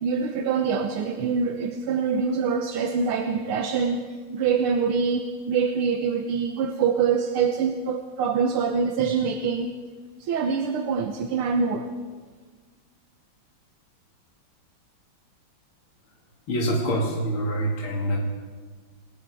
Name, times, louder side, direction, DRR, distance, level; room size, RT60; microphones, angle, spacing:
voice 1, 0.0-9.7 10.2-11.9, right 6 dB, 85° right, 5 dB, 2.0 m, -25 dB
voice 2, 16.5-18.2, equal, 75° left, -2 dB, 3.3 m, -25 dB
29.0 x 21.0 x 4.9 m, 1.5 s
omnidirectional pair, 2.3 m